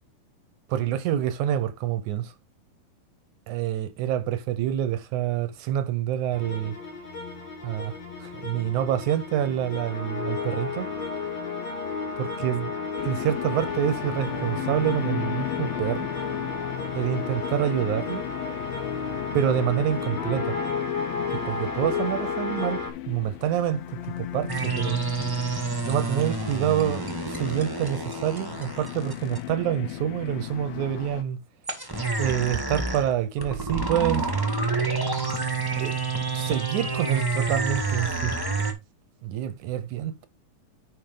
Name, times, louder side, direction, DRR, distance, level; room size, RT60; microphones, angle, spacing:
voice 1, 0.7-2.3 3.5-6.8 7.6-7.9 8.2-10.9 12.2-12.7 13.0-16.1 17.0-18.3 19.3-20.6 21.5-25.0 25.8-31.4 32.2-34.2 35.7-36.0 36.3-38.3 39.2-40.3, right 11 dB, 75° right, 2.0 m, -27 dB
sound 1, 6.3-22.9, left 4 dB, 50° left, 3.8 m, -32 dB
sound 2, 13.0-31.2, left 13 dB, 85° left, 2.6 m, -36 dB
sound 3, 24.5-29.4 31.7-38.7, right 4 dB, 15° right, 0.9 m, -28 dB
10.5 x 5.0 x 3.9 m
omnidirectional pair, 4.0 m